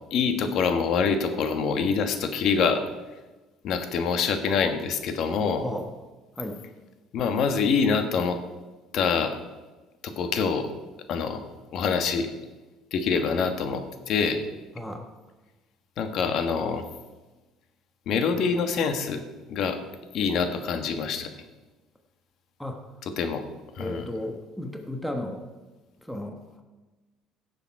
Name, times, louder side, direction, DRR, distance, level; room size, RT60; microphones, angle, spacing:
voice 1, 0.1-2.8 3.6-5.7 7.1-8.4 8.9-9.4 10.0-10.7 11.1-11.4 11.7-12.3 12.9-14.4 16.0-16.9 18.1-19.2 19.5-19.8 20.1-21.3 23.2-23.4 23.8-24.1, left 5 dB, 55° left, 7 dB, 1.3 m, -25 dB
voice 2, 14.7-15.1 22.6-22.8 23.8-25.4 26.1-26.4, left 1 dB, ahead, 3 dB, 1.1 m, -34 dB
16.5 x 6.9 x 4.7 m, 1.2 s
cardioid pair, 125°, 0 cm